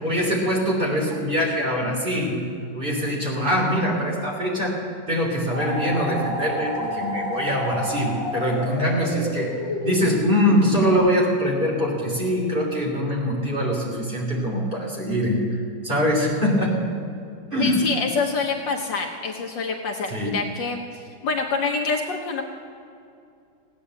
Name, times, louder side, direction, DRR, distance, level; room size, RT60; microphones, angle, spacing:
voice 1, 0.0-2.4 2.7-4.7 5.1-9.5 9.8-15.4 15.8-16.8 17.5-17.8 20.1-20.3, equal, 25° right, -2 dB, 3.2 m, -23 dB
sound 1, 5.5-11.0, left 1 dB, 50° right, 5.4 m, -29 dB
voice 2, 17.6-22.4, left 4 dB, 65° left, 2 dB, 1.6 m, -26 dB
16.5 x 9.8 x 7.6 m, 2.5 s
omnidirectional pair, 2.4 m